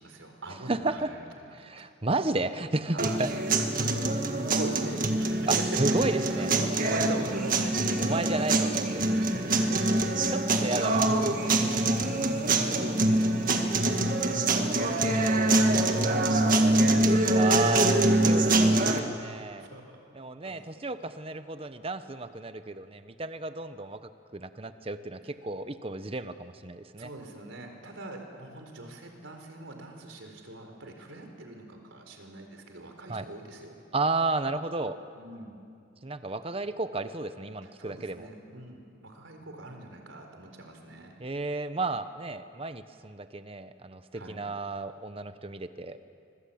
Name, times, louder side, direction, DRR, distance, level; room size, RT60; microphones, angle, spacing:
voice 1, 0.0-1.9 2.9-3.3 3.6-5.5 5.9-6.5 6.8-8.5 9.0-10.3 12.0-17.3 18.0-18.5 19.6-20.0 20.4-20.8 27.0-33.7 35.1-35.6 37.6-41.1 44.1-44.4, right 2 dB, 85° right, 4 dB, 4.3 m, -43 dB
voice 2, 0.7-1.1 1.5-3.6 5.5-6.5 8.0-9.1 10.3-11.6 17.3-19.7 20.1-27.1 33.1-33.2 33.9-35.0 36.0-38.3 41.2-46.1, right 2 dB, 30° right, 11 dB, 0.9 m, -33 dB
sound 1, 3.0-19.0, right 2 dB, 45° right, 1.8 m, -24 dB
25.5 x 22.0 x 8.7 m, 2.4 s
head